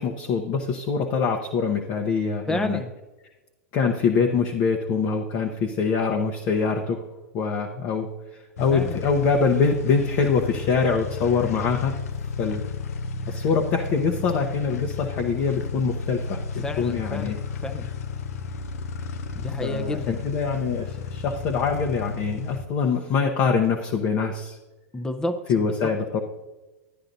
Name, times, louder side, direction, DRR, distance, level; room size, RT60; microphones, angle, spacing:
voice 1, 0.0-2.8 3.7-7.0 7.3-12.0 12.4-12.6 13.3-17.4 19.6-24.6 25.5-26.2, left 5 dB, 45° left, 2 dB, 0.8 m, -24 dB
voice 2, 2.5-2.9 8.7-9.0 16.6-17.9 19.3-20.2 24.9-25.7, left 1 dB, 10° left, 7 dB, 0.5 m, -30 dB
sound 1, 8.6-22.6, left 5 dB, 85° left, 0.6 m, -32 dB
12.0 x 9.7 x 2.6 m, 1.1 s
hypercardioid pair, 110°, 8 cm